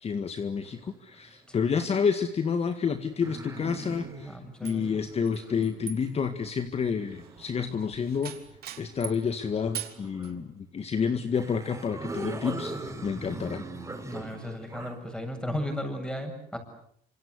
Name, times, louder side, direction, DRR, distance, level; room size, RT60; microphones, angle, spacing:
voice 1, 0.0-8.4 8.8-12.7 13.0-13.6, left 6 dB, 35° left, 9 dB, 1.9 m, -29 dB
sound 1, 0.6-1.5 2.3-7.8 8.6-10.4 11.0-11.1 11.3-15.0, right 2 dB, 15° right, 6.1 m, -42 dB
voice 2, 4.3-4.8 14.0-16.6, left 1 dB, 5° left, 6 dB, 7.6 m, -35 dB
sound 2, 4.6-9.3 9.7-10.3, right 11 dB, 65° right, 3.2 m, -42 dB
28.0 x 26.0 x 8.3 m, 0.67 s
cardioid pair, 110°, 17 cm